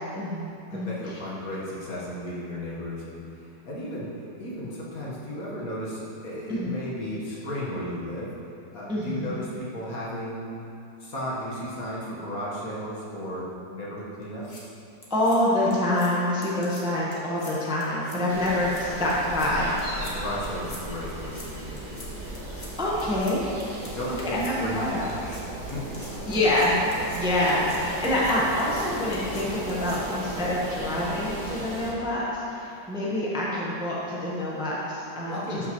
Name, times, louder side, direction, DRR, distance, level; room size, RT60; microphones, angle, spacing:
voice 1, 0.1-1.2 6.5-6.7 8.9-9.4 15.1-19.7 22.8-23.5 24.0-25.0 26.3-26.8 27.2-35.6, left 1 dB, 5° right, -7 dB, 0.9 m, -26 dB
voice 2, 0.7-8.4 8.7-10.6 11.0-14.6 20.0-22.3 23.8-26.1 35.3-35.7, equal, 55° left, -6 dB, 1.8 m, -35 dB
sound 1, 14.2-14.6 15.0-15.4 15.7-16.1 16.4-16.8 17.1-17.5 17.8-18.2 18.4-18.8 19.1-19.5 19.8-20.1 20.4-20.8 21.1-21.5 21.8-22.1 22.3-22.7 23.0-23.3 23.6-23.9 24.2-24.5 25.1-25.4 25.7-27.2 27.5-27.8 28.0-28.3 28.6-28.8 29.1-29.4 29.7-30.0, left 2 dB, 30° left, 1.3 m, -45 dB
sound 2, 18.3-31.9, right 1 dB, 55° right, 2.2 m, -36 dB
12.0 x 6.1 x 3.1 m, 2.7 s
omnidirectional pair, 1.9 m